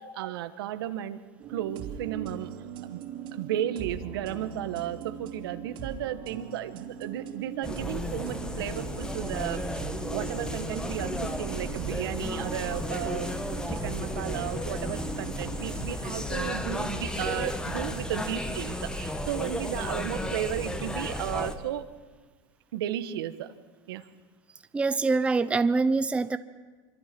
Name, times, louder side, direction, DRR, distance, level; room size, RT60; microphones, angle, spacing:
voice 1, 0.2-1.2 1.5-2.5 2.9-3.0 3.3-13.3 13.7-21.9 22.7-23.6 23.9-24.1, right 11 dB, 85° right, 10 dB, 1.4 m, -34 dB
sound 1, 1.4-15.9, right 8 dB, 45° right, 2.9 m, -40 dB
sound 2, 7.6-21.5, left 1 dB, 5° left, 1.5 m, -33 dB
voice 2, 24.7-26.4, right 3 dB, 10° right, 12 dB, 0.6 m, -24 dB
25.5 x 24.5 x 6.1 m, 1.4 s
supercardioid pair, 135°, 12 cm